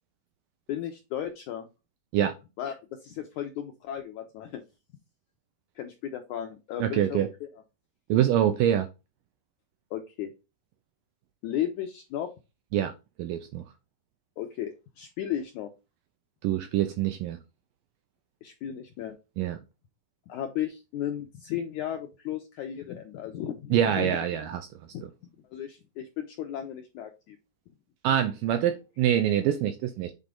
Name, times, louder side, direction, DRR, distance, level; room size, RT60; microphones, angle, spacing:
voice 1, 0.7-1.7 2.6-4.6 5.8-7.5 9.9-10.3 11.4-12.3 14.4-15.7 18.4-19.1 20.3-24.2 24.9-25.1 25.5-27.4, left 10 dB, 80° left, 1.7 m, -35 dB
voice 2, 6.8-7.3 8.1-8.9 12.7-12.9 13.2-13.6 16.4-17.4 19.4-19.6 23.7-24.6 28.0-30.1, right 10 dB, 80° right, 2.0 m, -25 dB
8.3 x 4.2 x 3.8 m
omnidirectional pair, 4.5 m